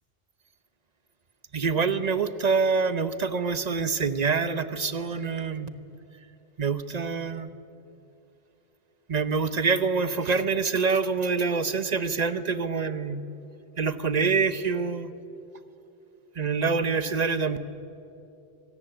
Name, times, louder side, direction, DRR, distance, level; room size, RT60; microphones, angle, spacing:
voice 1, 1.5-5.7 6.6-7.5 9.1-13.2 13.8-15.1 16.4-17.6, right 5 dB, 40° right, 12 dB, 1.0 m, -26 dB
25.0 x 17.5 x 9.0 m, 2.8 s
omnidirectional pair, 1.0 m